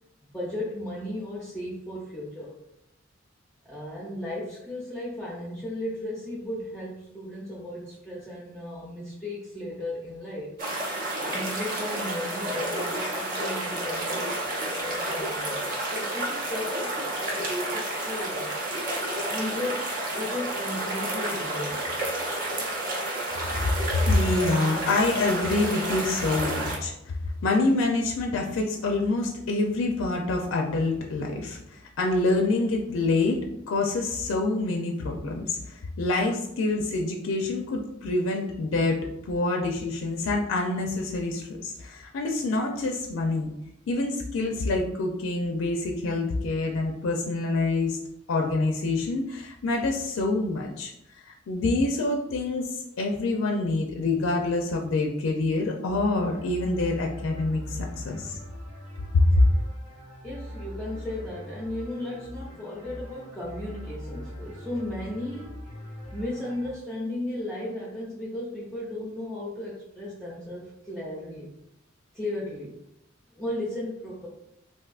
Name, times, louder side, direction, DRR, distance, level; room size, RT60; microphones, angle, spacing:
voice 1, 0.3-2.5 3.6-10.5 11.2-14.3 14.6-15.6 15.9-17.0 17.3-18.6 19.3-21.9 60.2-65.6 66.1-71.5 72.1-72.7 73.4-74.3, left 1 dB, 5° left, -7 dB, 0.5 m, -35 dB
sound 1, 10.6-26.8, right 1 dB, 45° right, 0.7 m, -30 dB
voice 2, 23.9-33.4 33.7-43.5 43.9-48.0 48.3-50.9 51.3-58.4 59.1-59.4, left 2 dB, 85° left, 1 dB, 0.4 m, -26 dB
sound 2, 55.9-66.7, left 1 dB, 70° right, 1.5 m, -41 dB
3.5 x 2.6 x 2.3 m, 0.82 s
head